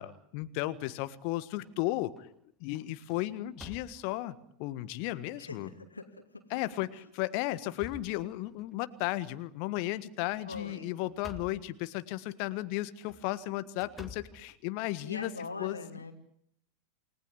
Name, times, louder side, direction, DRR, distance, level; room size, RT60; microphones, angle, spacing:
voice 1, 0.0-2.3 2.6-5.7 6.5-15.3 15.6-15.8, left 17 dB, 45° left, 14 dB, 1.5 m, -34 dB
sound 1, 1.2-1.7 2.2-2.4 2.7-4.3 5.0-5.1 5.6-5.7 6.6-6.8 7.3-8.7 10.3-11.7 12.9-15.1, left 2 dB, ahead, 2.6 m, -51 dB
voice 2, 5.4-6.5 10.5-10.9 15.0-16.1, left 3 dB, 80° left, 3 dB, 2.9 m, -42 dB
29.0 x 19.0 x 9.9 m, 0.70 s
figure-of-eight pair, 90°, 0 cm